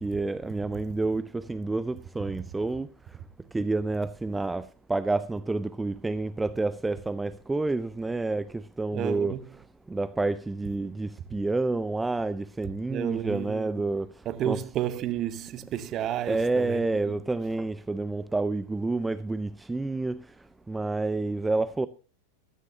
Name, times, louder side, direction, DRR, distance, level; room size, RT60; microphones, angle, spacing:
voice 1, 0.0-2.9 3.5-9.3 9.9-14.1 14.5-14.6 16.3-20.2 20.7-21.9, right 3 dB, 10° right, 0.5 m, -29 dB
voice 2, 8.9-9.5 12.9-13.7 14.2-17.2, right 11 dB, 30° right, 0.9 m, -32 dB
15.0 x 13.0 x 2.8 m
figure-of-eight pair, 90°, 0 cm